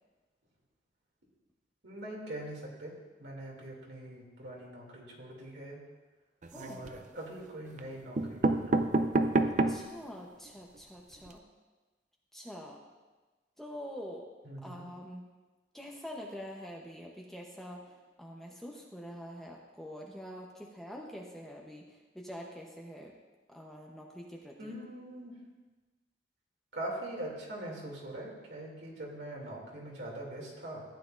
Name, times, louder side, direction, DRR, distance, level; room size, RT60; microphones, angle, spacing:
voice 1, 1.8-2.9 3.2-5.8 6.5-9.0 14.4-14.9 24.6-25.3 26.7-30.8, right 1 dB, 70° right, -2 dB, 2.7 m, -42 dB
sound 1, 6.4-7.0 7.8-7.9 8.2-10.0 10.5-10.6 10.7-10.8 11.1-11.3, right 2 dB, 40° right, 0.5 m, -28 dB
voice 2, 6.5-6.8 9.7-11.4 12.3-12.8 13.6-14.3 14.6-15.3 15.7-23.1 23.5-24.7, equal, ahead, -2 dB, 0.9 m, -45 dB
14.5 x 9.6 x 2.6 m, 1.2 s
head